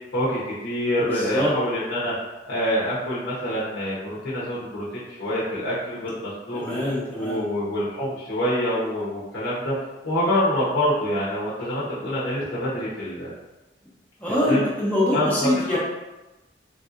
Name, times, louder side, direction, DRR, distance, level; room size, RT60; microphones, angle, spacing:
voice 1, 0.1-2.1 2.4-6.8 7.1-9.7 10.0-13.3 14.4-14.6 15.1-15.8, equal, 70° left, -9 dB, 0.8 m, -26 dB
voice 2, 1.0-1.5 6.5-7.4 14.2-15.8, left 1 dB, 10° left, -8 dB, 0.7 m, -24 dB
3.5 x 2.6 x 2.4 m, 1.0 s
head